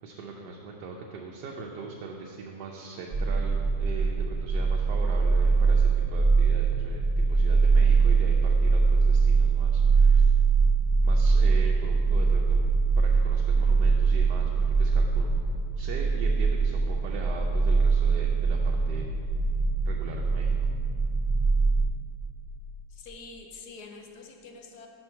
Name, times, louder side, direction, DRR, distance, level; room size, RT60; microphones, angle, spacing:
voice 1, 0.0-10.3 11.0-15.3 15.8-19.1 19.9-20.5, right 4 dB, 80° right, 0 dB, 1.1 m, -40 dB
sound 1, 3.1-21.8, right 4 dB, 50° right, 0.4 m, -22 dB
voice 2, 22.9-24.9, left 4 dB, 70° left, 3 dB, 1.2 m, -46 dB
6.0 x 4.4 x 5.7 m, 2.7 s
omnidirectional pair, 1.8 m